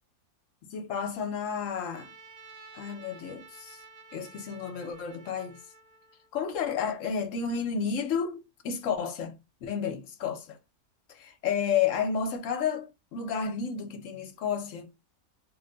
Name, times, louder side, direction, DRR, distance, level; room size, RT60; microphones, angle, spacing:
voice 1, 0.6-2.1 2.7-3.8 4.1-5.6 6.3-10.6 11.1-14.9, left 6 dB, 65° left, 1.0 m, -31 dB
Trumpet, 1.9-6.3, right 3 dB, 85° right, 1.2 m, -52 dB
2.8 x 2.1 x 3.7 m
omnidirectional pair, 1.5 m